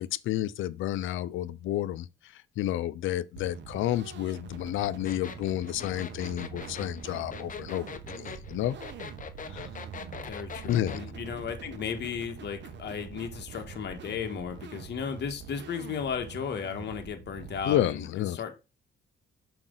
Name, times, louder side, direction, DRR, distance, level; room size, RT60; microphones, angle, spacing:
voice 1, 0.0-2.1 2.6-7.9 8.1-8.8 9.5-9.7 10.6-11.0 17.7-18.4, left 13 dB, 80° left, 0.5 m, -30 dB
sound 1, 3.4-17.8, right 6 dB, 65° right, 1.0 m, -44 dB
sound 2, 5.1-11.0, left 6 dB, 40° left, 0.9 m, -42 dB
voice 2, 10.2-18.5, left 7 dB, 60° left, 1.4 m, -35 dB
5.9 x 5.0 x 3.8 m
cardioid pair, 90°, 20 cm